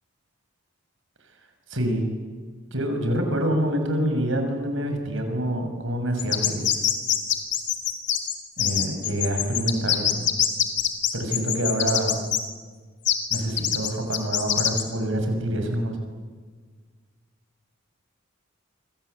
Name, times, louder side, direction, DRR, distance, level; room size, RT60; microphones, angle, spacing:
voice 1, 1.7-2.1 2.7-6.8 8.6-10.3 11.1-12.2 13.3-16.0, right 1 dB, 65° right, 5 dB, 6.6 m, -26 dB
sound 1, 6.2-12.4 13.0-14.8, left 11 dB, 55° left, 3.3 m, -23 dB
28.0 x 25.5 x 8.4 m, 1.5 s
head